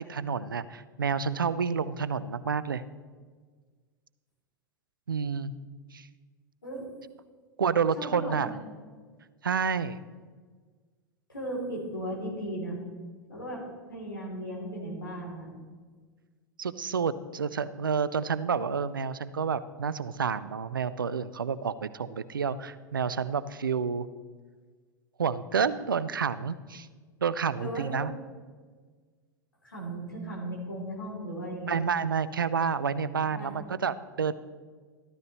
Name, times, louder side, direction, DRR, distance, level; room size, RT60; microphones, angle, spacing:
voice 1, 0.0-2.8 5.1-5.5 5.9-6.1 7.6-8.5 9.4-10.0 16.6-24.1 25.2-26.9 27.2-28.1 31.7-34.3, right 6 dB, 80° right, 16 dB, 0.5 m, -29 dB
voice 2, 8.0-8.5 11.3-12.8 13.3-13.6 13.9-15.5 27.6-28.0 29.6-31.8 33.2-33.6, right 1 dB, 85° left, -3 dB, 3.1 m, -36 dB
14.0 x 13.0 x 3.1 m, 1.5 s
figure-of-eight pair, 85°, 11 cm